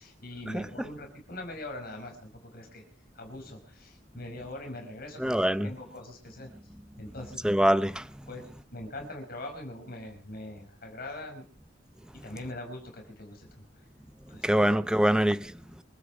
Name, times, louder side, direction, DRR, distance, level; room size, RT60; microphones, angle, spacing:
voice 1, 0.0-2.8 3.2-5.3 5.6-6.5 7.0-7.4 8.3-8.4 8.7-11.4 12.2-13.6 14.3-15.1, left 1 dB, 50° left, 5.3 m, -42 dB
voice 2, 5.2-5.7 7.4-8.1 14.4-15.8, right 1 dB, 5° right, 0.6 m, -24 dB
26.0 x 9.6 x 5.1 m
head